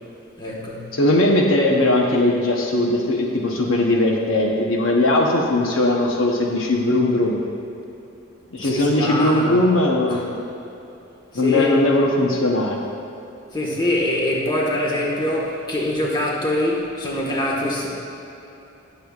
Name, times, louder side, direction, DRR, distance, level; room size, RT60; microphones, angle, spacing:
voice 1, 0.4-0.9 8.6-9.6 10.1-10.2 11.3-11.8 13.5-17.9, left 1 dB, 20° left, -3 dB, 1.4 m, -24 dB
voice 2, 0.9-7.4 8.5-10.4 11.3-12.8, left 1 dB, 70° left, -1 dB, 0.9 m, -19 dB
18.5 x 7.0 x 2.4 m, 2.9 s
head